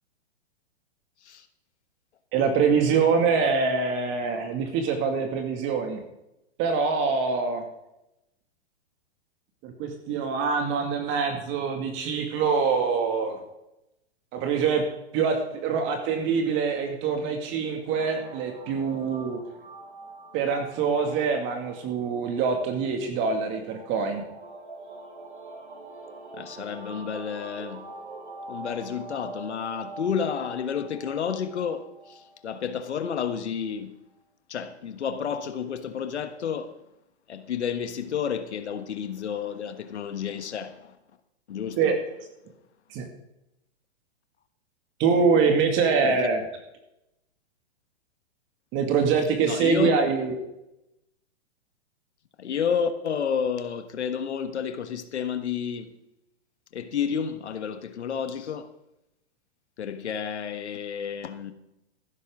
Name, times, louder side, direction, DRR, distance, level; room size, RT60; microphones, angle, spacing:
voice 1, 2.3-6.0 6.6-7.6 9.6-13.4 14.3-14.9 15.1-19.4 20.3-24.2 41.8-42.0 42.9-43.0 45.0-46.4 48.7-50.4, right 5 dB, 35° right, 2.2 m, -24 dB
sound 1, 17.9-33.2, right 2 dB, 80° right, 4.1 m, -44 dB
voice 2, 26.3-27.9 28.5-33.9 34.5-36.7 37.3-40.9 41.5-41.9 46.0-46.3 49.4-50.0 52.4-55.9 56.7-58.7 59.8-61.5, left 7 dB, 80° left, 1.5 m, -30 dB
14.5 x 12.5 x 3.7 m
hypercardioid pair, 125°, 33 cm